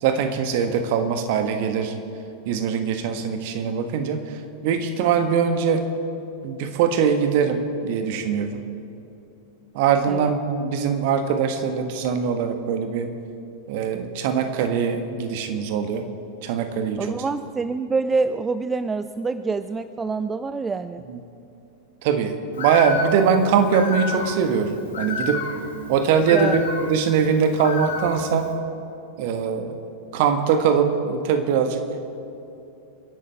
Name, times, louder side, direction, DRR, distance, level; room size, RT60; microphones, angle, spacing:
voice 1, 0.0-1.9 2.5-4.2 4.6-5.8 6.4-8.5 9.7-13.1 13.7-16.0 16.4-17.1 21.1-21.2 22.0-25.4 25.9-28.5 29.2-29.8 30.1-31.8, right 6 dB, 50° right, 7 dB, 1.4 m, -22 dB
voice 2, 17.0-21.0 26.3-26.6, right 4 dB, 15° right, 12 dB, 0.4 m, -26 dB
Bird, 22.5-28.5, left 4 dB, 65° left, 2.1 m, -32 dB
28.5 x 11.0 x 3.5 m, 2.8 s
figure-of-eight pair, 90°, 0 cm